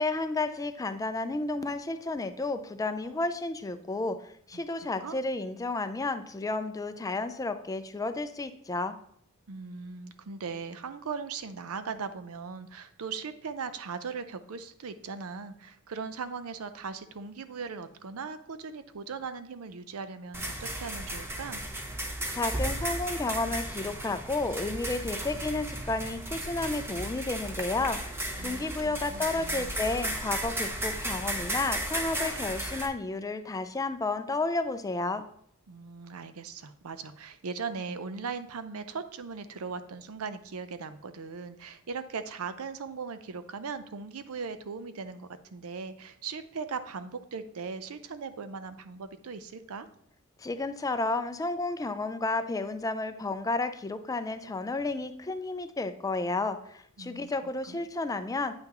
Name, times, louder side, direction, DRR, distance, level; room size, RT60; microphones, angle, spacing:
voice 1, 0.0-8.9 22.3-28.0 28.4-35.2 50.4-58.5, left 3 dB, 15° left, 10 dB, 0.4 m, -32 dB
voice 2, 9.5-21.6 28.4-29.7 35.7-49.9 57.0-57.3 57.7-57.8, right 5 dB, 80° right, 11 dB, 0.6 m, -39 dB
sound 1, 20.3-32.9, right 1 dB, 10° right, 0.7 m, -34 dB
8.7 x 5.9 x 3.0 m, 0.68 s
head